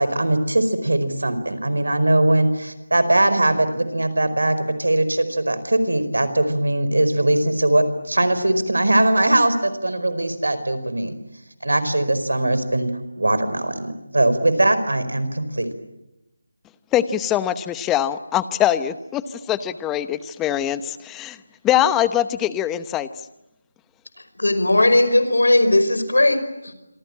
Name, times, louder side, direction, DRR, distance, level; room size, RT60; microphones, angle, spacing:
voice 1, 0.0-11.2 11.6-12.9 13.2-15.7, right 1 dB, 80° right, 12 dB, 4.9 m, -20 dB
voice 2, 16.9-21.4 21.6-23.1, left 11 dB, 10° left, 14 dB, 0.9 m, -22 dB
voice 3, 24.4-26.7, left 1 dB, 85° left, 11 dB, 5.2 m, -17 dB
27.5 x 25.0 x 8.8 m, 0.92 s
figure-of-eight pair, 160°, 0 cm